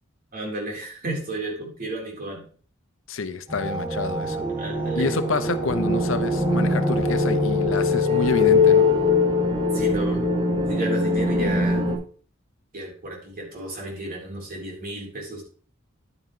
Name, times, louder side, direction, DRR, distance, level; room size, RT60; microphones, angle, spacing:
voice 1, 0.3-2.5 4.6-5.1 9.7-10.3 10.7-11.9 12.7-15.4, right 2 dB, 45° right, -1 dB, 3.9 m, -33 dB
voice 2, 3.1-4.4 4.9-8.9, left 3 dB, 70° left, 10 dB, 0.8 m, -28 dB
sound 1, 3.5-11.9, left 3 dB, 25° right, 2.4 m, -22 dB
10.5 x 9.3 x 3.2 m, 0.43 s
head